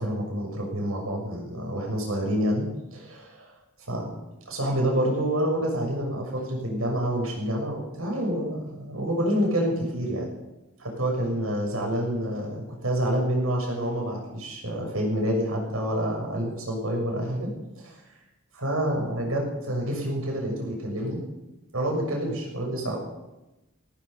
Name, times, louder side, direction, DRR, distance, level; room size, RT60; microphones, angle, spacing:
voice 1, 0.0-2.6 2.9-3.5 3.9-4.1 4.5-10.3 10.8-18.0 18.5-21.2 21.7-23.0, equal, 85° right, 0 dB, 6.7 m, -28 dB
17.0 x 15.5 x 5.5 m, 0.99 s
head